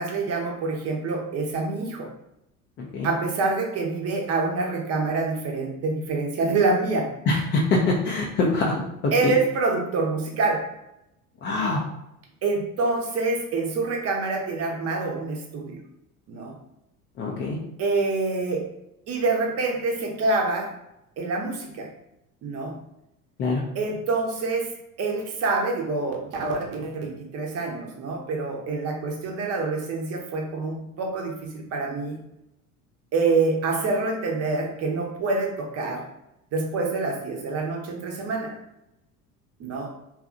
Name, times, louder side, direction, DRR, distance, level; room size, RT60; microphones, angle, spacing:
voice 1, 0.0-2.1 3.0-7.1 9.1-10.6 12.4-15.8 16.3-16.5 17.8-18.6 19.1-20.7 21.2-21.9 22.4-22.8 23.7-24.7 25.0-32.2 33.1-36.0 36.5-38.5 39.6-39.9, right 3 dB, 35° right, 1 dB, 0.7 m, -26 dB
voice 2, 2.8-3.1 7.3-9.3 11.4-11.8 17.2-17.6 23.4-23.6, left 2 dB, 25° left, -3 dB, 0.4 m, -24 dB
2.7 x 2.3 x 2.5 m, 0.84 s
figure-of-eight pair, 70°, 46 cm